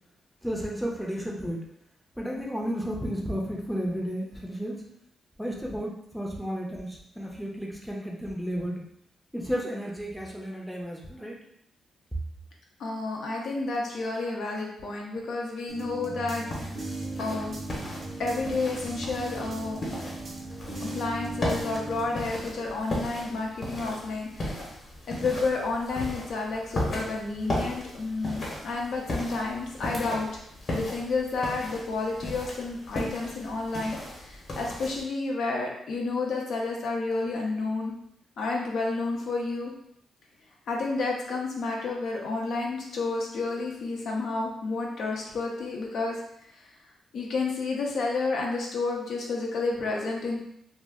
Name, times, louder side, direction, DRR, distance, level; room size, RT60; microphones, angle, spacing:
voice 1, 0.4-1.6 2.2-4.8 5.4-8.8 9.3-11.4, equal, ahead, -2 dB, 0.5 m, -32 dB
voice 2, 12.8-16.8 17.2-17.6 18.2-19.8 20.8-24.6 25.1-30.4 30.7-38.0 38.4-39.7 40.7-46.2 46.5-46.7 47.1-50.4, left 3 dB, 70° left, -1 dB, 0.6 m, -30 dB
sound 1, 15.7-22.1, right 2 dB, 50° right, 0.6 m, -37 dB
sound 2, 16.5-35.0, left 1 dB, 45° left, 0.9 m, -36 dB
2.3 x 2.1 x 3.4 m, 0.73 s
cardioid pair, 95°, 0 cm